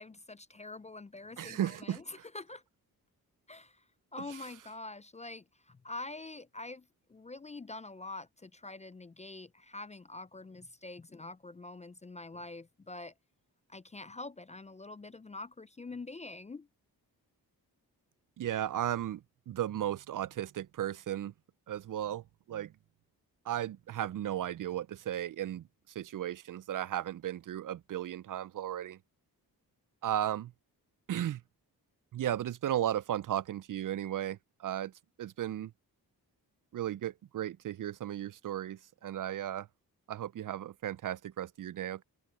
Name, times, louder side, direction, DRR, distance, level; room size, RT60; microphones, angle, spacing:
voice 1, 0.0-2.6 3.5-3.8 4.1-13.1 13.7-16.7, left 2 dB, 20° left, 0.4 m, -45 dB
voice 2, 1.4-2.2 4.3-4.4 18.4-21.3 21.7-22.7 23.5-25.6 26.0-29.0 30.0-30.5 31.1-31.4 32.1-34.9 35.2-35.7 36.7-39.7 40.1-42.0, right 11 dB, 55° right, 0.5 m, -35 dB
cardioid pair, 70°, 38 cm